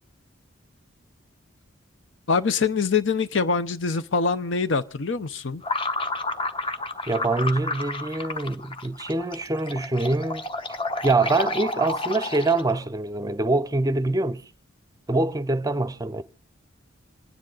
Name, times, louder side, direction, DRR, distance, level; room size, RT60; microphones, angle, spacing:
voice 1, 2.3-5.6, left 5 dB, 70° left, 0.8 m, -24 dB
sound 1, 5.6-12.8, left 2 dB, 25° left, 0.9 m, -31 dB
voice 2, 7.1-10.4 11.0-14.4 15.1-16.2, right 2 dB, 20° right, 0.6 m, -24 dB
26.5 x 10.0 x 3.9 m
head